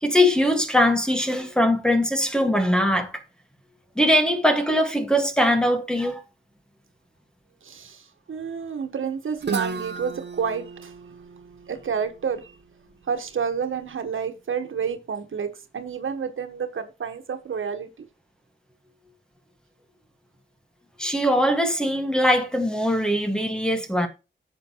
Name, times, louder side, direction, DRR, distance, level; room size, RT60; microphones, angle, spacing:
voice 1, 0.0-3.1 4.0-6.2 21.0-24.1, equal, 5° left, 1.7 m, -21 dB
voice 2, 7.6-8.0 8.3-10.9 11.7-12.5 13.1-17.9, right 6 dB, 80° right, 1.4 m, -29 dB
Guitar, 9.4-13.2, right 5 dB, 60° right, 1.1 m, -34 dB
10.5 x 8.0 x 3.0 m
wide cardioid pair, 125°, 20 cm